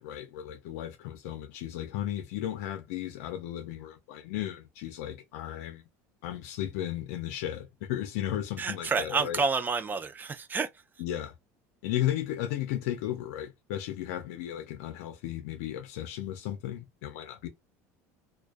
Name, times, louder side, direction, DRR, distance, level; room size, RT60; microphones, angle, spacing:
voice 1, 0.0-5.8 6.2-9.4 11.0-11.3 11.8-17.5, left 12 dB, 80° left, 0.5 m, -35 dB
voice 2, 8.6-10.7, right 4 dB, 25° right, 0.4 m, -29 dB
2.3 x 2.2 x 2.4 m
supercardioid pair, 100°, 8 cm